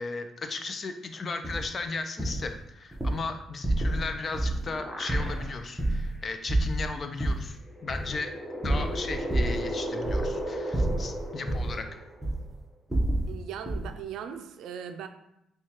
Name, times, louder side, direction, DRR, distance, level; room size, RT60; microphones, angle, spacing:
voice 1, 0.0-8.3 8.6-11.9, left 3 dB, 45° left, 7 dB, 0.5 m, -36 dB
sound 1, 1.4-1.6 2.2-2.5 2.9-3.2 3.6-4.1 4.3-4.7 5.1-6.2 6.5-7.5 7.9-8.2 8.6-9.7 10.0-10.4 10.7-11.8 12.2-12.5 12.9-13.3 13.7-13.9, right 1 dB, 10° right, 0.9 m, -28 dB
sound 2, 4.3-5.8 6.3-6.4 7.6-12.4, equal, 20° left, 1.0 m, -36 dB
voice 2, 13.3-15.1, right 8 dB, 85° right, 8 dB, 0.4 m, -39 dB
6.2 x 2.3 x 2.9 m, 0.83 s
cardioid pair, 90°, 0 cm